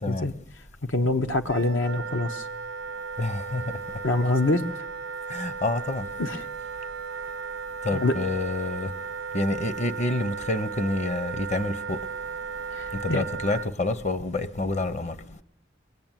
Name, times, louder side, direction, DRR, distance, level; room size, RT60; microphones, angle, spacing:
voice 1, 0.8-2.5 4.0-4.6 6.2-6.4 7.9-8.1 12.7-13.2, left 2 dB, 75° left, 1.2 m, -25 dB
Wind instrument woodwind instrument, 1.5-13.7, right 5 dB, 75° right, 0.8 m, -35 dB
voice 2, 3.2-3.6 5.3-6.1 7.8-8.9 9.3-12.0 13.0-15.2, left 2 dB, 35° left, 1.0 m, -28 dB
22.5 x 21.0 x 9.2 m
head